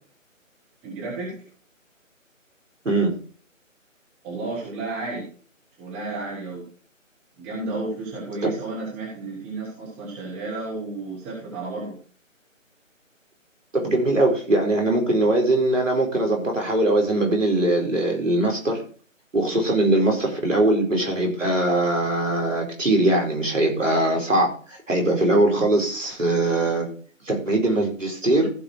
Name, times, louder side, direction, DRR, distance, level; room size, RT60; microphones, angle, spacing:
voice 1, 0.8-1.4 4.2-5.3 5.8-6.7 7.4-12.0, right 3 dB, 5° right, -7 dB, 1.0 m, -32 dB
voice 2, 13.7-18.8 19.3-26.9 27.3-28.5, right 2 dB, 70° right, 1 dB, 4.7 m, -21 dB
15.0 x 5.3 x 4.7 m, 0.41 s
figure-of-eight pair, 155°, 40 cm